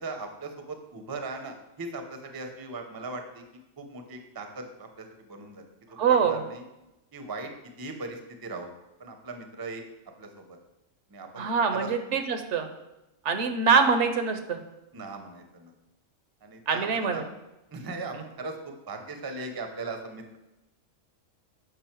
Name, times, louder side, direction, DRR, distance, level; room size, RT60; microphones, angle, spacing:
voice 1, 0.0-3.4 3.8-5.6 6.1-6.6 7.1-7.5 7.8-8.7 9.0-9.8 10.2-10.6 11.1-11.5 11.7-11.9 14.9-15.7 16.4-17.2 17.7-20.4, right 3 dB, 25° right, 5 dB, 0.5 m, -39 dB
voice 2, 6.0-6.4 11.4-12.7 13.2-14.6 16.7-17.2, right 5 dB, 70° right, 7 dB, 0.9 m, -24 dB
6.9 x 5.1 x 4.4 m, 0.96 s
omnidirectional pair, 1.3 m